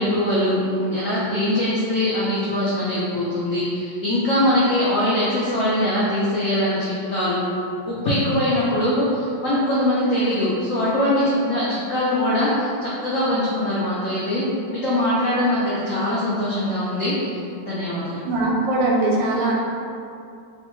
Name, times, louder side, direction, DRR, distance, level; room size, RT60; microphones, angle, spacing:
voice 1, 0.0-7.4 7.9-14.4 14.7-17.4 17.7-18.2, left 1 dB, 85° left, -8 dB, 0.6 m, -22 dB
voice 2, 18.2-19.5, right 2 dB, 85° right, -3 dB, 1.3 m, -21 dB
3.0 x 2.1 x 2.9 m, 2.4 s
omnidirectional pair, 1.9 m